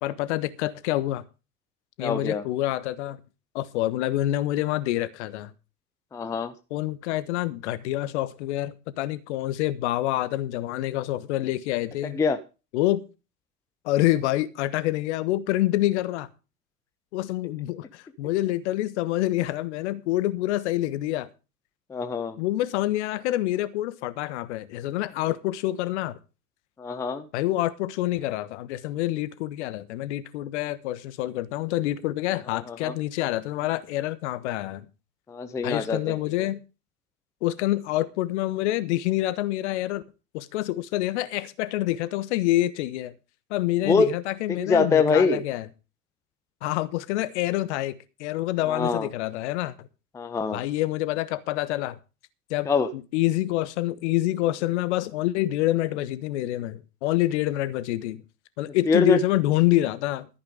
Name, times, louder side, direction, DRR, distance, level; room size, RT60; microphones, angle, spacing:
voice 1, 0.0-1.2 2.0-3.2 3.5-5.5 6.7-12.2 12.7-13.0 13.8-16.3 17.1-21.3 22.4-26.2 27.3-34.9 35.6-36.6 37.4-40.0 40.3-43.1 43.5-45.6 46.6-49.7 50.5-52.0 52.5-58.2 58.6-60.3, left 15 dB, 45° left, 1.3 m, -27 dB
voice 2, 2.0-2.4 6.1-6.5 12.0-12.4 21.9-22.4 26.8-27.2 32.5-32.9 35.3-36.2 43.9-44.1 44.5-45.4 48.7-49.1 50.1-50.6 52.7-52.9 58.9-59.2, left 4 dB, 5° left, 0.6 m, -24 dB
14.0 x 8.9 x 5.1 m
figure-of-eight pair, 95°, 48 cm